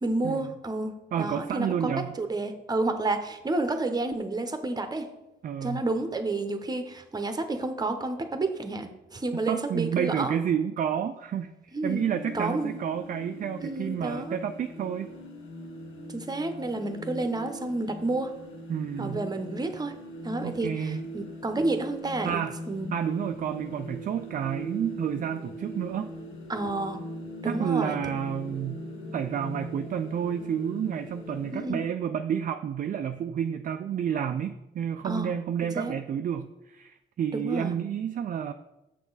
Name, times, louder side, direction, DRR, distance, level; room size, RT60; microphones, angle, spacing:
voice 1, 0.0-5.1 5.6-10.4 11.7-12.0 12.3-12.8 13.6-14.4 16.1-18.3 19.0-19.9 20.2-22.9 26.5-27.0 27.4-28.0 31.5-31.8 35.0-35.3 35.7-35.9 37.3-37.7, right 2 dB, 20° right, 7 dB, 0.9 m, -30 dB
voice 2, 1.1-2.1 5.4-5.8 9.5-15.1 18.7-19.2 20.4-21.0 22.2-22.6 22.9-26.1 27.4-28.8 29.1-38.5, right 8 dB, 40° right, 7 dB, 0.4 m, -30 dB
sound 1, 11.9-31.7, left 1 dB, 80° left, 1.3 m, -41 dB
7.4 x 5.9 x 4.0 m, 0.94 s
cardioid pair, 90°, 20 cm